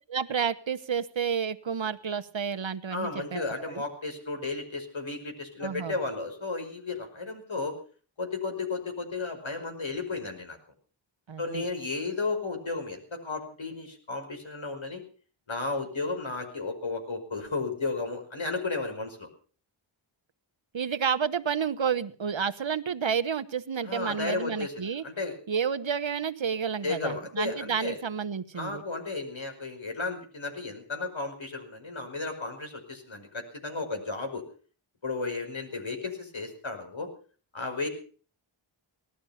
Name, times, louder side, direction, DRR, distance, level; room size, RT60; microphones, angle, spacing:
voice 1, 0.1-3.9 5.6-6.0 11.3-11.7 20.7-25.0 25.5-28.8, right 7 dB, 65° right, 11 dB, 1.2 m, -30 dB
voice 2, 2.9-7.8 8.2-10.6 11.4-15.0 15.5-19.3 23.8-25.4 26.8-28.0 28.5-34.4 35.0-37.1 37.5-37.9, left 3 dB, 65° left, 5 dB, 5.3 m, -33 dB
18.5 x 12.5 x 5.8 m, 0.41 s
wide cardioid pair, 65°, 50 cm